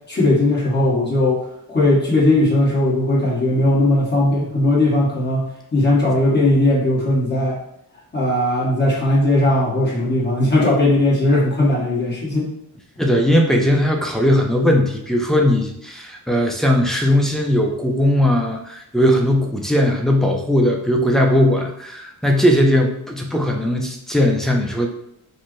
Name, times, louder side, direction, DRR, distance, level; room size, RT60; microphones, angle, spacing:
voice 1, 0.1-1.4 1.7-7.6 8.1-12.5, left 1 dB, 25° left, -5 dB, 1.1 m, -18 dB
voice 2, 13.0-24.9, left 1 dB, ahead, 1 dB, 0.4 m, -18 dB
4.3 x 2.1 x 3.1 m, 0.76 s
wide cardioid pair, 135°, 39 cm